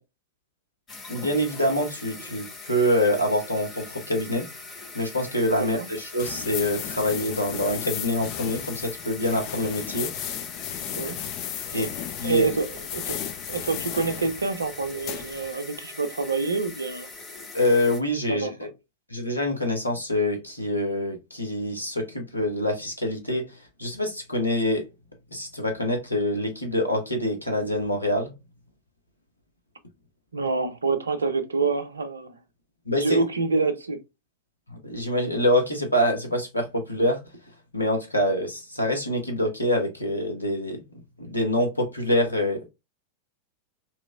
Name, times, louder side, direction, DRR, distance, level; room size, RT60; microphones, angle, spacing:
sound 1, 0.9-18.0, left 3 dB, 25° left, 0.9 m, -42 dB
voice 1, 1.1-4.5 4.9-10.1 11.7-11.9 12.2-12.5 17.5-18.7 19.1-23.4 23.8-24.8 25.3-28.3 32.9-33.2 34.7-37.2 37.7-40.8 41.2-42.7, left 1 dB, 85° left, 0.9 m, -25 dB
voice 2, 5.6-5.9 11.0-11.2 11.7-11.9 12.2-13.2 13.5-17.1 18.3-18.7 30.3-32.3 33.0-34.0, right 4 dB, 75° right, 0.5 m, -27 dB
sound 2, 6.2-15.5, left 10 dB, 40° left, 0.4 m, -35 dB
3.0 x 3.0 x 2.2 m
figure-of-eight pair, 90°, 0 cm